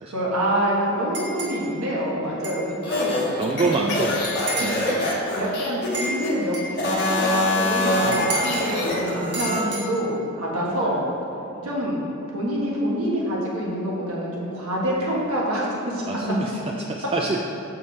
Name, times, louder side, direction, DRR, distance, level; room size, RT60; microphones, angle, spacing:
voice 1, 0.1-3.2 4.6-5.0 5.4-6.8 7.1-11.0 11.6-12.0 12.3-16.3, equal, 75° right, -4 dB, 1.5 m, -26 dB
sound 1, 1.1-1.6 2.4-2.6 3.0-3.1 4.2-4.8 5.9-6.7 8.1-8.7 9.3-9.8, right 2 dB, 55° right, 1.3 m, -30 dB
sound 2, 2.8-6.3 6.7-9.6, left 2 dB, 50° left, 1.3 m, -24 dB
voice 2, 3.3-4.9 5.4-5.6 7.9-8.3 9.3-9.6 10.8-11.0 11.5-11.8 16.0-17.4, right 3 dB, 25° right, 0 dB, 0.3 m, -28 dB
6.4 x 5.5 x 4.1 m, 2.9 s
head